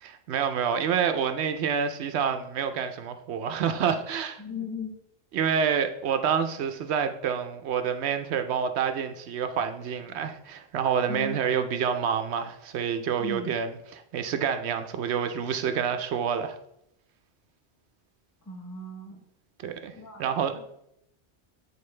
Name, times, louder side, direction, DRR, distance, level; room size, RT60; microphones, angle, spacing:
voice 1, 0.0-4.4 5.3-16.6 19.6-20.9, right 7 dB, 80° right, 0.9 m, -28 dB
voice 2, 4.4-4.9 11.1-11.4 13.2-13.5 18.4-19.2 19.9-20.2, left 2 dB, 15° left, 0.8 m, -36 dB
8.5 x 4.4 x 3.2 m
omnidirectional pair, 1.1 m